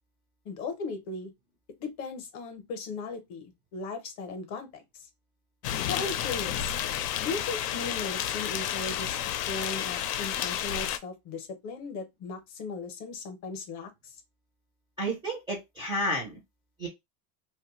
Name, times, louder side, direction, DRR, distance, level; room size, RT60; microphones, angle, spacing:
voice 1, 0.4-1.3 1.8-4.8 5.8-6.7 7.2-9.2 9.5-14.1, left 3 dB, 40° left, 0.7 m, -37 dB
sound 1, 5.6-11.0, left 11 dB, 80° left, 0.6 m, -31 dB
voice 2, 15.0-16.4 16.8-16.9, equal, 10° right, 0.4 m, -31 dB
2.5 x 2.2 x 2.9 m
supercardioid pair, 145°, 46 cm